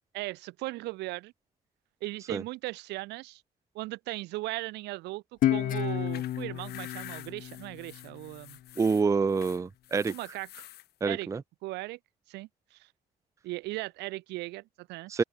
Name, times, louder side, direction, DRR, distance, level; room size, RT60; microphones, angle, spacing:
voice 1, 0.1-1.3 2.0-3.4 3.7-8.6 10.1-10.7 11.0-11.3 11.6-12.0 12.3-12.9 13.4-15.1, right 20 dB, 90° right, 3.4 m, -38 dB
Guitar, 5.4-8.6, left 13 dB, 55° left, 0.6 m, -31 dB
sound 1, 5.8-10.9, left 14 dB, 70° left, 2.1 m, -48 dB
voice 2, 8.8-10.1 11.0-11.4 15.1-15.2, right 5 dB, 20° right, 0.5 m, -27 dB
open air
cardioid pair, 110°, 17 cm